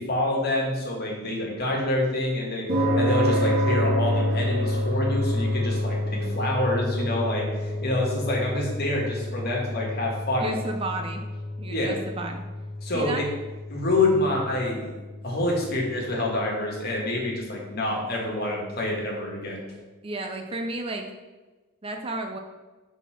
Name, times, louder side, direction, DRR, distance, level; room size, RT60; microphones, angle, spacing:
voice 1, 0.0-10.6 11.7-12.0 12.8-13.3 13.7-14.9 15.2-19.6, left 1 dB, 45° left, -2 dB, 1.7 m, -27 dB
sound 1, 2.7-19.2, left 1 dB, 45° right, 2.2 m, -29 dB
voice 2, 10.4-11.2 11.6-12.4 12.9-13.2 20.0-21.1 21.8-22.4, right 2 dB, 25° right, 4 dB, 0.5 m, -32 dB
5.5 x 4.2 x 5.7 m, 1.2 s
head